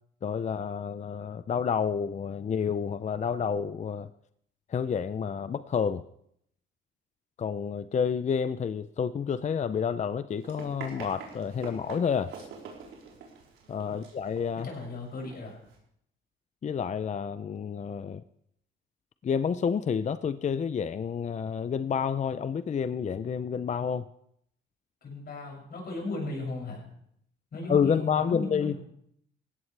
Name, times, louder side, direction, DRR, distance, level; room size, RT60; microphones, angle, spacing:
voice 1, 0.2-4.1 4.7-6.0 7.4-12.3 13.7-14.7 16.6-18.2 19.2-24.1 27.7-28.7, left 7 dB, 35° left, 13 dB, 0.5 m, -29 dB
Run, 10.3-15.8, right 5 dB, 90° right, 4.2 m, -46 dB
voice 2, 14.5-15.6 25.0-26.8 27.5-28.8, left 2 dB, 55° left, -1 dB, 7.1 m, -36 dB
19.0 x 16.0 x 3.4 m, 0.72 s
cardioid pair, 90°, 20 cm